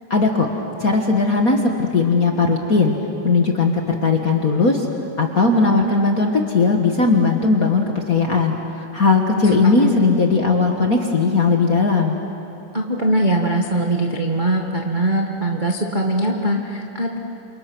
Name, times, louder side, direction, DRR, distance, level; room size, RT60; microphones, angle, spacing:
voice 1, 0.1-0.5 0.8-3.0 3.2-4.9 5.2-12.2, left 4 dB, 60° left, 2 dB, 0.9 m, -18 dB
voice 2, 9.4-10.0 12.7-17.2, right 1 dB, 65° right, 0 dB, 0.4 m, -21 dB
29.5 x 27.5 x 6.2 m, 2.8 s
omnidirectional pair, 4.0 m